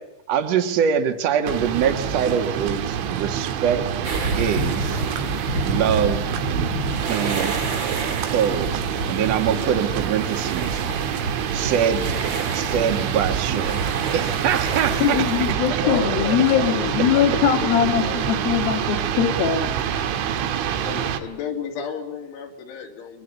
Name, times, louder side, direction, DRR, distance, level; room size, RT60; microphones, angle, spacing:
voice 1, 0.3-3.9 4.3-5.0 5.6-6.2 6.5-6.7 7.0-7.5 8.2-10.8 11.5-12.0 12.5-15.8, right 8 dB, 55° right, 6 dB, 1.9 m, -24 dB
sound 1, 1.5-21.2, right 9 dB, 85° right, 3.9 m, -26 dB
sound 2, 4.0-15.5, right 2 dB, 35° right, 2.0 m, -29 dB
voice 2, 15.0-19.7, left 9 dB, 65° left, 6 dB, 2.8 m, -21 dB
voice 3, 15.8-18.4 20.8-23.2, left 7 dB, 85° left, 3 dB, 5.1 m, -32 dB
24.5 x 22.0 x 8.3 m, 0.88 s
omnidirectional pair, 5.4 m